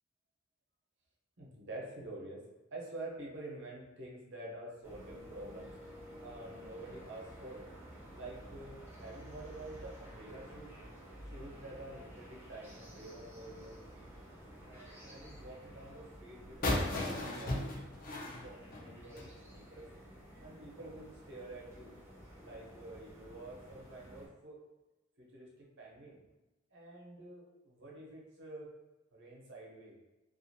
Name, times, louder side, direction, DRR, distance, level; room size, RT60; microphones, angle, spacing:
voice 1, 1.4-2.4 2.7-5.7 6.2-7.6 8.1-10.7 11.2-14.1 14.7-19.9 20.4-21.9 22.4-24.6 25.2-26.2 26.7-28.7 29.1-30.0, right 2 dB, 65° right, -3 dB, 0.8 m, -48 dB
sound 1, 4.8-24.3, equal, 10° right, 0.6 m, -52 dB
sound 2, 16.6-19.3, left 1 dB, 45° left, 0.6 m, -35 dB
2.5 x 2.4 x 2.7 m, 1.0 s
head